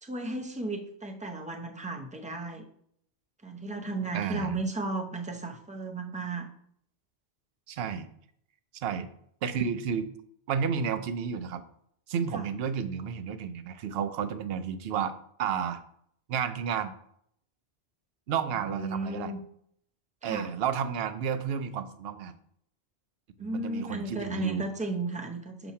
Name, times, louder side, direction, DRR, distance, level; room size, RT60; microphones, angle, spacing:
voice 1, 0.0-2.6 3.4-6.5 12.3-12.5 18.5-19.4 20.2-20.5 23.4-25.7, right 2 dB, 10° right, 3 dB, 0.4 m, -34 dB
voice 2, 4.1-4.5 7.7-8.1 8.7-9.1 9.4-10.1 10.5-11.6 12.1-15.1 15.4-15.8 16.3-16.9 18.3-19.3 20.2-22.3 23.4-24.6, right 7 dB, 65° right, 11 dB, 0.8 m, -31 dB
6.8 x 2.9 x 5.6 m, 0.69 s
omnidirectional pair, 1.1 m